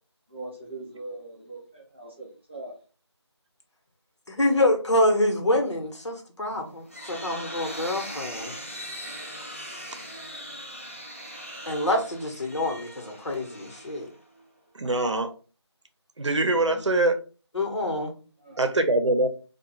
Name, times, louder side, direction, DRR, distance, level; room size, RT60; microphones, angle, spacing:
voice 1, 0.3-2.8 9.8-9.9 18.4-18.6, right 2 dB, 25° right, 0.7 m, -41 dB
voice 2, 4.3-8.5 11.7-14.1 17.5-18.1, left 1 dB, 75° left, 1.0 m, -26 dB
sound 1, 6.5-14.4, equal, 30° left, 0.4 m, -40 dB
voice 3, 14.7-15.3 16.2-17.2 18.6-19.3, right 2 dB, 85° right, 0.6 m, -23 dB
2.7 x 2.3 x 2.8 m
figure-of-eight pair, 175°, 15 cm